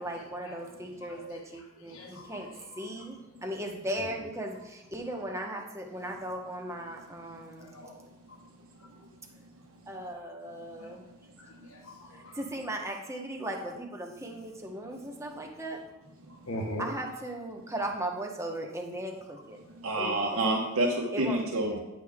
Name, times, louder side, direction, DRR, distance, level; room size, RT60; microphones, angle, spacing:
voice 1, 0.0-2.5 2.8-7.7 9.9-11.0 12.1-15.8 16.8-19.6 20.0-20.4 21.1-21.5, right 1 dB, 15° right, 1 dB, 1.0 m, -37 dB
voice 2, 1.9-2.3 4.0-4.1 7.6-7.9 11.4-12.3 16.5-16.8, equal, 70° left, 1 dB, 1.3 m, -40 dB
voice 3, 19.8-21.8, right 1 dB, 70° right, -2 dB, 1.2 m, -28 dB
10.0 x 6.4 x 3.6 m, 0.99 s
head